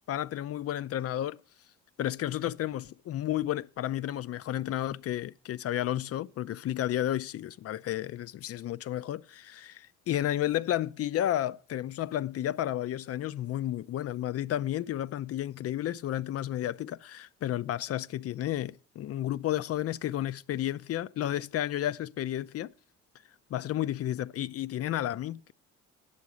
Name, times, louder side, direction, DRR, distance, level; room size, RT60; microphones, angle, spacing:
voice 1, 0.1-1.4 2.0-22.7 23.5-25.5, left 12 dB, 55° left, 0.4 m, -32 dB
8.4 x 6.8 x 6.2 m
cardioid pair, 90°, 30 cm